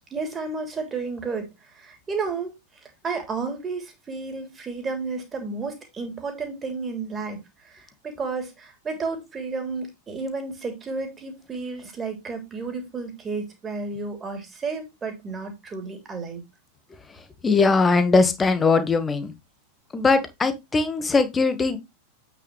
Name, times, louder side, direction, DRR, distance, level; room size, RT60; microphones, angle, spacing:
voice 1, 0.1-1.5 1.7-2.5 3.0-16.4, right 4 dB, 20° right, 3.2 m, -32 dB
voice 2, 17.4-19.3 19.9-21.8, left 4 dB, 15° left, 1.5 m, -20 dB
8.5 x 6.1 x 3.2 m
figure-of-eight pair, 90°, 0 cm